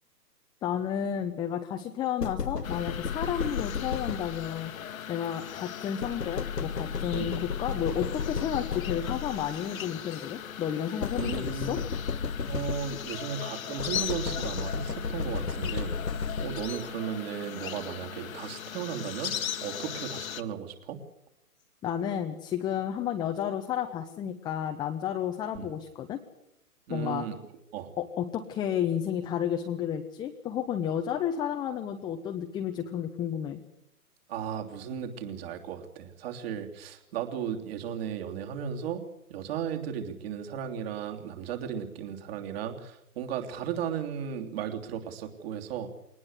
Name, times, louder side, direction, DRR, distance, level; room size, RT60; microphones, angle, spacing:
voice 1, 0.6-4.7 5.1-11.8 21.8-26.2 26.9-27.3 28.0-33.6, left 9 dB, 10° left, 4 dB, 0.8 m, -32 dB
sound 1, 2.2-4.7 6.0-9.6 11.0-13.2 13.8-16.9, left 5 dB, 90° left, 1.3 m, -33 dB
sound 2, 2.6-20.4, left 9 dB, 60° left, 1.5 m, -39 dB
voice 2, 11.2-11.8 12.5-21.0 25.5-25.7 26.9-27.4 27.7-27.9 34.3-39.0 39.3-45.9, right 8 dB, 40° right, 4 dB, 3.3 m, -35 dB
22.0 x 19.5 x 8.2 m, 0.79 s
figure-of-eight pair, 130°, 46 cm